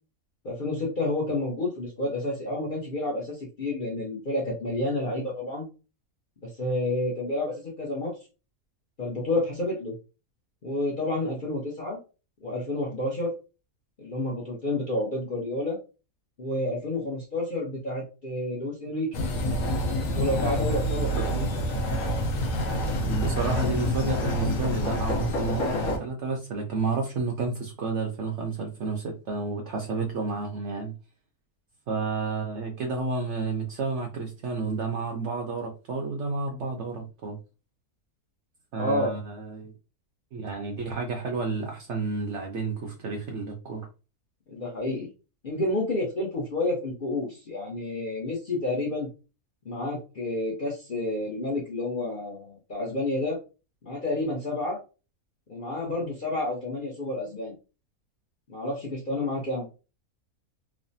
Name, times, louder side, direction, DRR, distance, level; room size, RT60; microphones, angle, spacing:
voice 1, 0.4-5.7 6.6-8.1 9.0-9.9 10.6-12.0 12.4-13.3 14.0-15.8 16.4-19.1 20.1-21.5 38.8-39.1 44.5-45.1 45.4-49.1 49.7-53.4 53.8-54.8 55.5-57.5 58.5-59.7, left 1 dB, 50° left, -3 dB, 0.6 m, -29 dB
sound 1, 19.1-26.0, equal, 70° left, 0.9 m, -27 dB
voice 2, 23.1-30.9 31.9-37.4 38.7-39.7 40.3-43.9, right 4 dB, 65° right, 1 dB, 0.7 m, -31 dB
3.2 x 2.0 x 2.6 m, 0.32 s
omnidirectional pair, 1.6 m